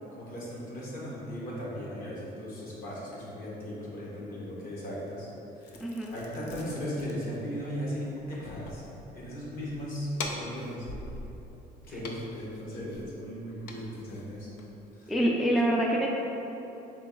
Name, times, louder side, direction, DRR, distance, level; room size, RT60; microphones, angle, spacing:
voice 1, 0.1-5.3 5.6-5.9 6.1-8.9 9.1-10.9 11.8-14.5 14.9-15.1, equal, 60° left, -5 dB, 1.3 m, -37 dB
sound 1, 5.6-14.9, left 2 dB, 80° left, 0.5 m, -44 dB
voice 2, 5.8-6.2 15.1-16.1, right 1 dB, ahead, -2 dB, 0.3 m, -26 dB
3.8 x 3.1 x 3.8 m, 3.0 s
cardioid pair, 110°, 17 cm